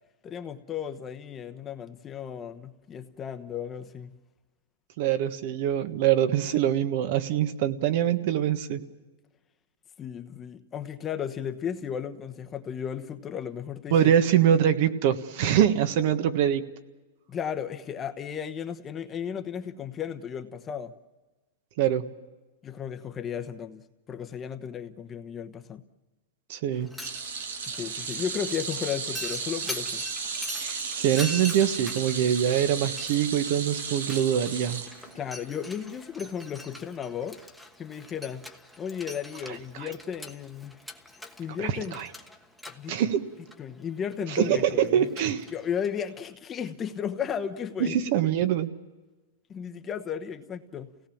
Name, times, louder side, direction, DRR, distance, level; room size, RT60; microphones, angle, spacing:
voice 1, 0.2-4.1 10.0-14.1 17.3-20.9 22.6-25.8 27.7-30.0 35.1-37.4 37.8-38.4 38.8-40.8 41.4-42.0 42.7-42.9 43.6-45.0 45.5-48.0 49.5-50.9, left 8 dB, 20° left, 8 dB, 1.1 m, -34 dB
voice 2, 5.0-8.8 13.9-16.6 21.8-22.0 26.5-26.9 30.6-34.8 39.8-39.9 41.6-42.1 42.9-43.2 44.3-45.4 47.8-48.7, right 10 dB, 55° right, 9 dB, 1.5 m, -24 dB
Mechanisms, 26.7-46.3, left 2 dB, ahead, 1.3 m, -44 dB
sound 1, 27.0-35.5 35.8-36.0 37.2-37.3, right 5 dB, 90° right, 3.1 m, -34 dB
29.0 x 18.0 x 7.3 m, 1.2 s
supercardioid pair, 145°, 0 cm